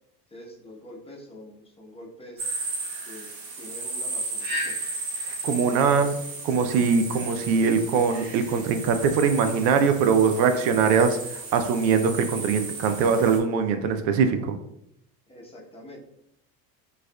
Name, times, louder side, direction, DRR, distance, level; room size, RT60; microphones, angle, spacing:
voice 1, 0.3-2.4 3.1-4.8 5.9-6.2 15.3-16.0, left 1 dB, 10° left, -3 dB, 0.8 m, -45 dB
sound 1, 2.4-13.4, right 3 dB, 45° right, 1.0 m, -34 dB
voice 2, 5.2-6.1 6.4-14.6, right 5 dB, 80° right, 8 dB, 0.6 m, -22 dB
4.7 x 2.4 x 2.2 m, 0.79 s
supercardioid pair, 95°, 49 cm